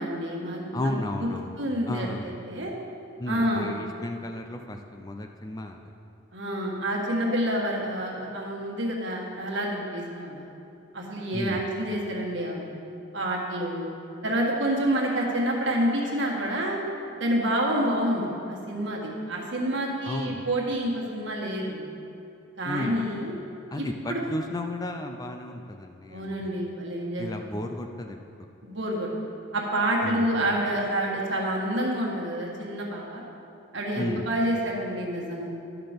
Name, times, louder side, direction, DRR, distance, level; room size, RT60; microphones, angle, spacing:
voice 1, 0.0-0.9 1.6-2.7 3.3-3.7 6.3-10.5 10.9-12.8 13.1-13.9 14.2-16.8 17.2-21.9 22.6-23.4 23.8-24.2 26.1-27.4 28.6-29.1 29.5-33.2 33.7-35.5, right 1 dB, 60° right, -2 dB, 1.7 m, -28 dB
voice 2, 0.7-1.6 1.9-2.4 3.2-5.8 11.3-11.6 20.1-20.5 22.6-23.0 23.7-26.5 27.2-28.2 30.0-30.3 33.9-34.3, left 1 dB, 20° left, 4 dB, 0.4 m, -33 dB
12.5 x 5.9 x 5.1 m, 2.6 s
head